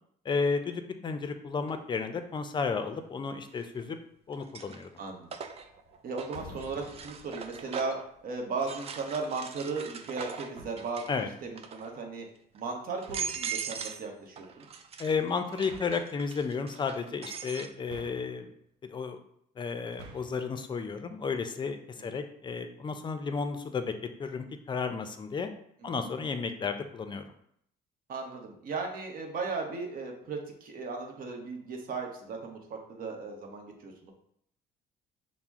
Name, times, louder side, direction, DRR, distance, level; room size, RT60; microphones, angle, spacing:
voice 1, 0.2-4.0 4.3-4.9 11.1-11.3 15.0-18.5 18.8-19.2 19.6-23.9 24.2-25.5 25.8-27.2, left 5 dB, 25° left, 8 dB, 0.5 m, -33 dB
sound 1, 1.7-1.8 3.5-3.9 4.3-8.1 8.6-11.2 11.5-12.0 12.6-12.7 13.0-14.1 14.4-17.7, right 6 dB, 35° right, 0.4 m, -41 dB
voice 2, 5.0-5.3 6.0-11.0 11.4-12.3 12.5-14.7 22.0-22.1 25.8-26.1 28.1-34.1, right 4 dB, 60° right, 2 dB, 1.0 m, -36 dB
sound 2, 5.1-5.9 6.2-8.4, left 6 dB, 80° left, 0.5 m, -50 dB
sound 3, 10.5-11.1 13.0-13.6 15.6-16.1 17.8-18.6 19.8-20.5, right 3 dB, 80° right, 0.6 m, -50 dB
5.8 x 2.1 x 3.5 m, 0.70 s
cardioid pair, 110°, 17 cm